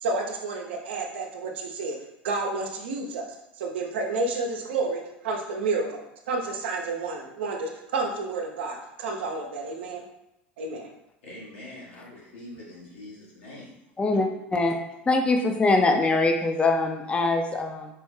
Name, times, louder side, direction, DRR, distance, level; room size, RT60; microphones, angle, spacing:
voice 1, 0.0-2.0 2.2-6.0 6.3-10.0 10.6-10.9, right 3 dB, 80° right, 1 dB, 0.6 m, -30 dB
voice 2, 11.2-13.8, left 1 dB, 80° left, -5 dB, 1.4 m, -44 dB
voice 3, 14.0-14.7 15.1-17.9, left 3 dB, 20° left, 4 dB, 0.4 m, -23 dB
4.5 x 2.1 x 3.2 m, 0.87 s
hypercardioid pair, 90°, 6 cm